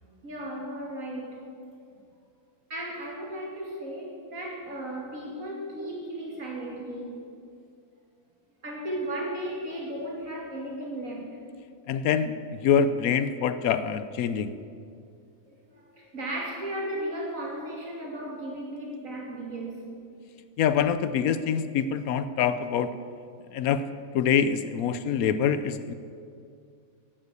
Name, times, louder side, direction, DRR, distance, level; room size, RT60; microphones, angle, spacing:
voice 1, 0.0-1.4 2.7-7.3 8.6-11.3 15.5-19.9, right 1 dB, 60° right, -2 dB, 3.0 m, -35 dB
voice 2, 11.9-12.3 12.6-14.5 20.6-22.9 23.5-23.8 24.1-25.9, left 7 dB, 75° left, 12 dB, 1.1 m, -25 dB
12.0 x 9.0 x 8.2 m, 2.3 s
omnidirectional pair, 1.5 m